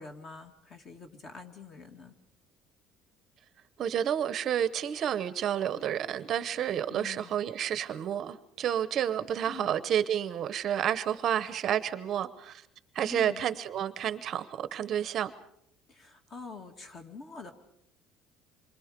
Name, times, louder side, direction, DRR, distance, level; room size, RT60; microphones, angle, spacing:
voice 1, 0.0-2.1 6.9-7.4 9.5-9.8 13.0-13.4 15.9-17.5, left 4 dB, 35° left, 6 dB, 2.5 m, -46 dB
voice 2, 3.8-12.6 12.9-15.3, right 9 dB, 40° right, 13 dB, 0.9 m, -30 dB
27.5 x 24.0 x 5.2 m, 0.75 s
cardioid pair, 170°, 0 cm